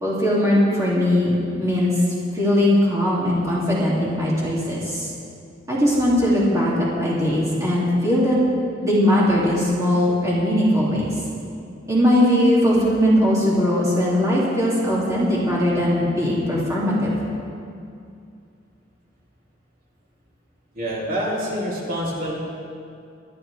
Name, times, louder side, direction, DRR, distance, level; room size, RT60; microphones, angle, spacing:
voice 1, 0.0-1.9 2.3-5.1 5.7-8.4 8.8-11.1 11.9-17.1, left 1 dB, 15° right, -7 dB, 2.5 m, -20 dB
voice 2, 20.7-22.3, equal, 50° right, -5 dB, 3.0 m, -26 dB
24.5 x 11.0 x 3.4 m, 2.4 s
head